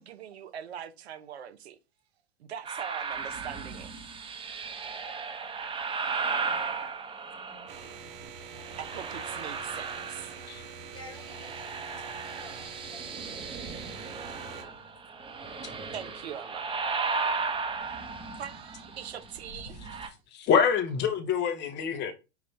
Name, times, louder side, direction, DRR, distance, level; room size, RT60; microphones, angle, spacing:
voice 1, 0.0-1.8 2.4-3.9 8.8-10.3 15.9-16.7 18.4-19.8, right 9 dB, 80° right, 0.9 m, -41 dB
sound 1, 2.6-8.0 8.5-10.7 11.0-20.1, right 4 dB, 15° right, 1.0 m, -35 dB
sound 2, 7.7-14.6, right 5 dB, 60° right, 1.3 m, -45 dB
voice 2, 10.9-13.0 13.3-13.9, left 1 dB, 15° left, 1.4 m, -52 dB
voice 3, 20.3-22.1, left 7 dB, 35° left, 1.0 m, -26 dB
5.8 x 2.6 x 3.3 m
hypercardioid pair, 110°, 32 cm